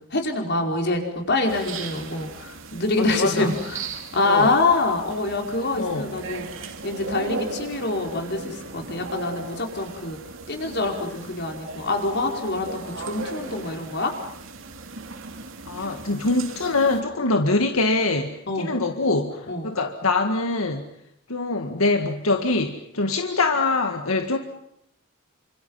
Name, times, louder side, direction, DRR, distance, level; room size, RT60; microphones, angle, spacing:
voice 1, 0.1-1.0 1.3-3.9 4.1-6.5 6.8-10.2 10.5-14.1 15.8-15.9 18.5-18.7 19.5-19.7, left 2 dB, 55° left, 2 dB, 5.1 m, -25 dB
sound 1, 1.5-17.0, right 4 dB, 65° right, 2.7 m, -37 dB
voice 2, 3.0-3.5 4.2-4.5 5.8-6.1 15.7-20.9 21.3-24.4, left 3 dB, 85° left, 5 dB, 1.9 m, -24 dB
28.5 x 26.5 x 5.7 m, 0.77 s
head